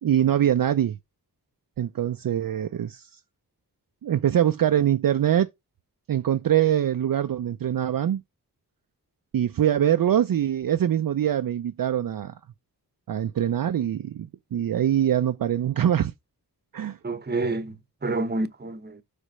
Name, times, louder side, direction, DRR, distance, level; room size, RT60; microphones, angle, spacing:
voice 1, 0.0-1.0 1.8-3.1 4.0-5.5 6.1-8.2 9.3-12.3 13.1-16.1 16.7-17.0, right 10 dB, 60° right, 0.5 m, -23 dB
voice 2, 17.0-19.0, right 2 dB, 25° right, 0.9 m, -29 dB
5.0 x 4.4 x 5.5 m
wide cardioid pair, 80°, 39 cm